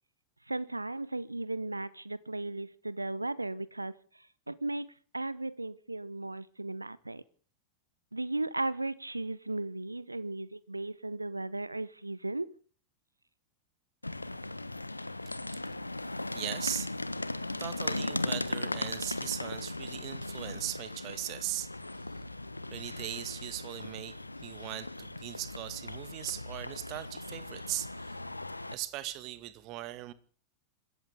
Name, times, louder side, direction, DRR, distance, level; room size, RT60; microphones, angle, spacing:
voice 1, 0.5-7.2 8.1-12.5, right 2 dB, 85° right, 0.9 m, -36 dB
sound 1, 14.0-28.7, left 2 dB, 85° left, 1.2 m, -38 dB
voice 2, 16.3-16.9 17.6-21.7 22.7-28.2 28.7-30.1, right 16 dB, 40° right, 1.9 m, -39 dB
26.5 x 14.5 x 3.7 m
figure-of-eight pair, 90°, 0 cm